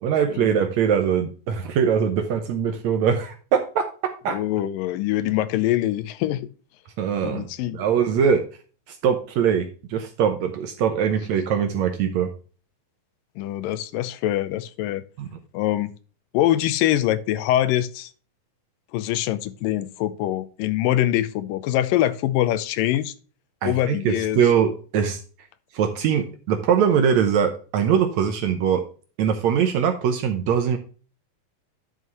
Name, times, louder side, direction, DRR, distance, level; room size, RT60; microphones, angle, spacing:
voice 1, 0.0-4.4 7.0-8.4 8.9-12.3 15.2-15.3 23.6-25.2 25.7-28.8 29.2-30.8, right 7 dB, 70° right, 1.8 m, -22 dB
voice 2, 4.3-6.4 7.2-7.8 13.4-15.0 15.5-15.9 16.3-18.1 18.9-23.1 23.6-24.4, left 13 dB, 80° left, 2.3 m, -24 dB
11.0 x 5.5 x 3.0 m
omnidirectional pair, 4.0 m